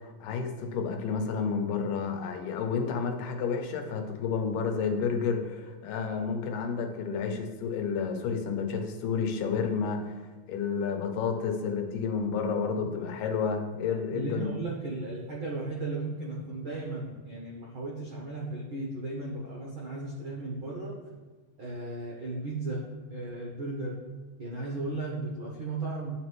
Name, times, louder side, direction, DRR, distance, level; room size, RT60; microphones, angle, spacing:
voice 1, 0.2-14.5, left 5 dB, 85° left, 4 dB, 2.4 m, -30 dB
voice 2, 14.1-20.9 21.6-22.8 23.1-24.0 24.4-26.1, right 2 dB, 75° right, -4 dB, 1.1 m, -35 dB
11.0 x 4.1 x 3.1 m, 1.4 s
omnidirectional pair, 3.8 m